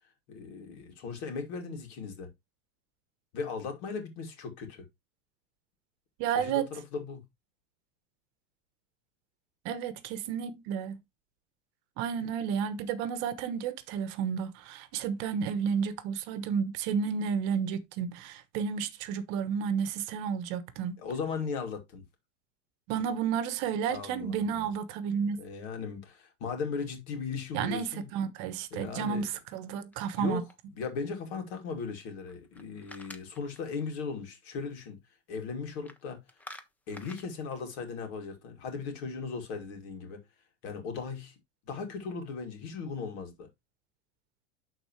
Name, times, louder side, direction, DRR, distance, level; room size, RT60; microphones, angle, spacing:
voice 1, 0.3-2.3 3.3-4.9 6.4-7.2 12.2-12.3 21.0-22.0 23.9-24.7 25.4-28.1 28.7-29.2 30.2-30.4 30.7-35.0 35.3-36.2 36.9-40.2 40.6-41.3 41.7-43.5, left 5 dB, 60° left, 2.6 m, -37 dB
voice 2, 6.2-6.7 9.6-11.0 12.0-20.9 22.9-25.4 27.5-30.4, right 7 dB, 50° right, 1.0 m, -31 dB
sound 1, 29.9-30.8 32.3-33.8 35.7-36.0 36.3-37.3, left 1 dB, 5° left, 0.4 m, -49 dB
11.5 x 4.1 x 3.1 m
supercardioid pair, 150°, 36 cm